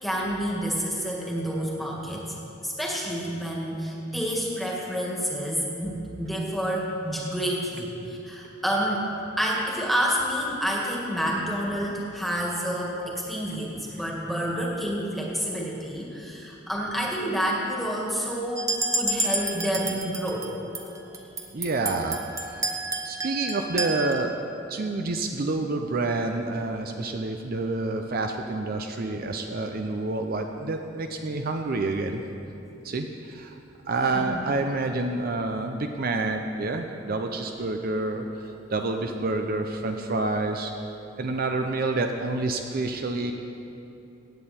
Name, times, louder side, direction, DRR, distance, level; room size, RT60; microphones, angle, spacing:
voice 1, 0.0-2.4 2.6-18.7 18.9-20.5 20.8-21.2 34.1-34.4, equal, ahead, -3 dB, 1.8 m, -29 dB
sound 1, 18.6-20.5 20.7-24.1, right 2 dB, 15° right, 0.9 m, -29 dB
voice 2, 21.5-22.6 23.0-24.3 24.7-32.2 32.8-33.6 33.9-40.7 41.2-43.3, right 2 dB, 50° right, 4 dB, 0.6 m, -28 dB
16.0 x 8.9 x 4.3 m, 2.8 s
head